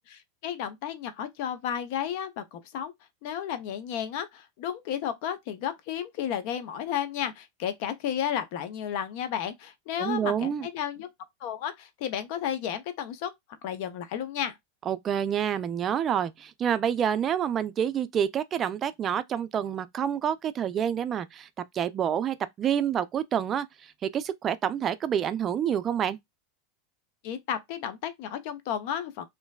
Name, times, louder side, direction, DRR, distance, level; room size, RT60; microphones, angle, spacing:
voice 1, 0.1-2.9 3.2-11.1 11.4-13.3 13.6-14.5 27.2-29.2, left 9 dB, 60° left, 0.5 m, -33 dB
voice 2, 10.0-10.7 14.9-21.5 21.7-26.2, right 9 dB, 35° right, 0.3 m, -28 dB
3.0 x 2.5 x 2.2 m
hypercardioid pair, 95°, 0 cm